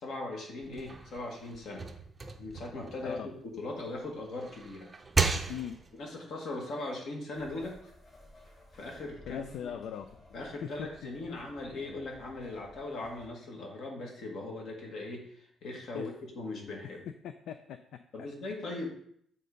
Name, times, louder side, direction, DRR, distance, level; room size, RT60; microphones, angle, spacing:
voice 1, 0.0-1.9 2.4-3.3 3.6-4.9 5.9-7.9 8.8-9.7 10.3-17.0 18.1-18.9, left 2 dB, 60° left, 0 dB, 1.8 m, -39 dB
sound 1, 0.6-3.8 4.2-6.0, right 4 dB, 15° right, 0.6 m, -34 dB
sound 2, 7.3-13.3, left 1 dB, 35° left, 3.3 m, -56 dB
voice 2, 9.3-10.1 10.6-10.9 11.3-11.4 15.9-16.1 17.2-18.3, left 9 dB, 75° left, 9 dB, 0.4 m, -40 dB
7.6 x 3.7 x 5.3 m, 0.67 s
cardioid pair, 155°, 0 cm